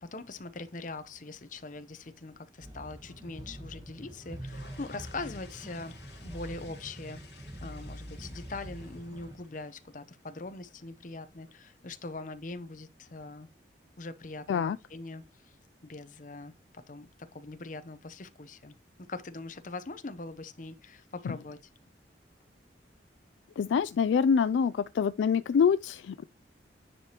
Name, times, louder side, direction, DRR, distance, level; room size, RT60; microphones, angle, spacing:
voice 1, 0.0-6.0 6.2-7.2 7.6-13.5 14.0-15.6 15.8-18.7 19.1-21.6, left 3 dB, 45° left, 0.7 m, -42 dB
sound 1, 2.6-9.4, equal, 20° right, 1.2 m, -45 dB
sound 2, 4.1-12.1, left 4 dB, 70° left, 2.6 m, -56 dB
voice 2, 23.6-26.2, left 6 dB, 90° left, 0.3 m, -26 dB
9.9 x 4.9 x 2.9 m
head